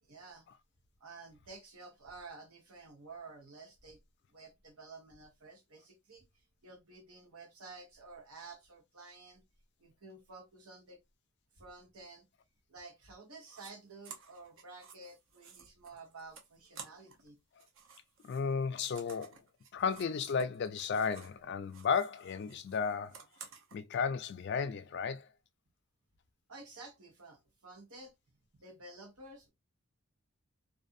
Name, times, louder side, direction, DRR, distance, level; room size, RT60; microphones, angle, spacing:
voice 1, 0.0-0.5 1.0-4.0 4.3-9.4 9.8-11.0 11.5-12.3 12.7-17.4 26.5-28.1 28.6-29.5, right 3 dB, 90° right, 1.1 m, -52 dB
sound 1, 13.5-13.7 14.0-17.3 17.5-21.4 21.7-23.8, right 6 dB, 60° right, 0.7 m, -54 dB
voice 2, 18.2-19.4 19.7-23.2 23.7-25.3, left 5 dB, 50° left, 0.3 m, -34 dB
2.5 x 2.4 x 2.5 m
head